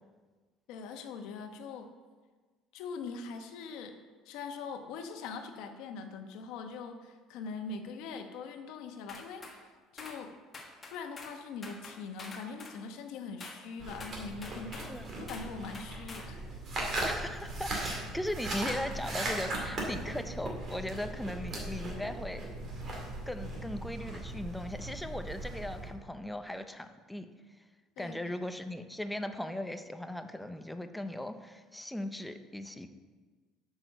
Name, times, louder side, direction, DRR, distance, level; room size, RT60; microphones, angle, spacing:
voice 1, 0.7-1.9 2.7-3.9 4.2-10.3 10.9-14.9 15.2-16.4 28.0-28.3, left 5 dB, 70° left, 6 dB, 1.1 m, -42 dB
sound 1, 9.1-9.6 10.0-10.2 10.5-11.4 11.6-12.8 13.4-13.6 14.0-14.9 15.3-15.5 15.7-16.3, left 3 dB, 20° left, 1.2 m, -46 dB
sound 2, 13.8-25.9, right 2 dB, 35° right, 2.3 m, -38 dB
voice 2, 17.0-22.4 23.3-27.3 28.0-32.9, left 1 dB, 5° left, 8 dB, 0.5 m, -38 dB
8.7 x 6.2 x 6.6 m, 1.4 s
cardioid pair, 165°, 0 cm